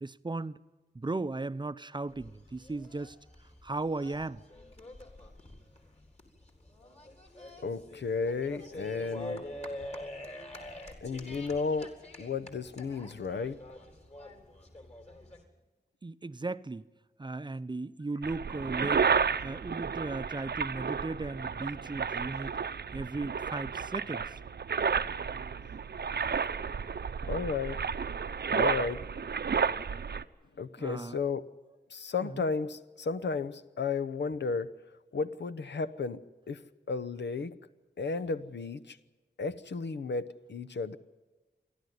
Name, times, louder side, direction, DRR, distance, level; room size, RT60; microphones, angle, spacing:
voice 1, 0.0-0.6 0.9-3.2 3.6-4.4 16.0-16.9 17.2-19.1 19.4-22.5 22.9-24.3 30.8-31.2 32.2-32.4, right 3 dB, 25° right, 0.6 m, -36 dB
sound 1, 2.1-15.4, left 1 dB, 35° left, 3.8 m, -46 dB
voice 2, 7.6-9.5 11.0-13.6 27.2-27.8 28.5-29.1 30.6-31.5 31.9-34.8 35.1-36.6 36.9-37.6 38.0-39.0 39.4-41.0, left 4 dB, 85° left, 1.0 m, -33 dB
sound 2, 18.2-30.2, right 6 dB, 70° right, 0.8 m, -32 dB
28.0 x 11.5 x 9.5 m
wide cardioid pair, 85°, 18 cm